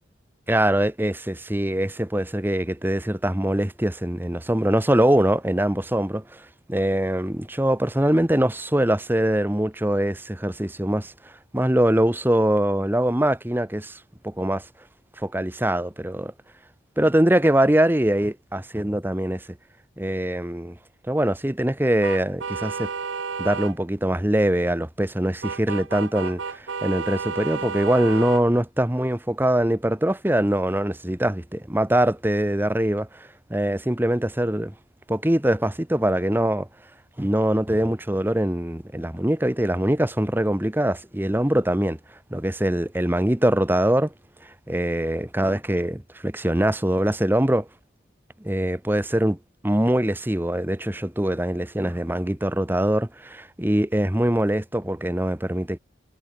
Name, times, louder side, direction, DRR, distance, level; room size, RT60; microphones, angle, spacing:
voice 1, 0.5-14.0 14.2-14.6 15.2-16.3 17.0-19.4 20.0-20.8 21.0-22.9 23.4-34.7 35.1-36.7 37.2-42.0 42.3-44.1 44.7-47.7 48.4-49.4 49.6-55.8, right 1 dB, 10° right, 0.9 m, -23 dB
sound 1, 22.0-23.7 25.4-28.4, right 5 dB, 80° right, 0.9 m, -31 dB
head